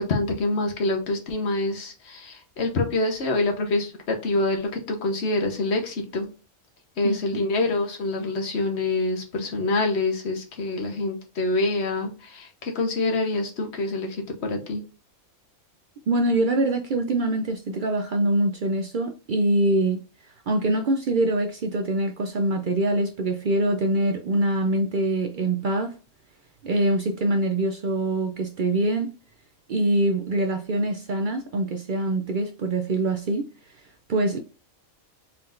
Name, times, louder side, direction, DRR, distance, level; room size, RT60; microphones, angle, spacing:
voice 1, 0.0-6.3 7.0-14.8, left 2 dB, 55° left, 1.2 m, -26 dB
voice 2, 7.0-7.4 16.1-20.0 20.5-25.9 26.6-29.1 29.7-33.5 34.1-34.4, right 1 dB, 85° right, 0.4 m, -24 dB
4.2 x 3.9 x 2.5 m
omnidirectional pair, 1.5 m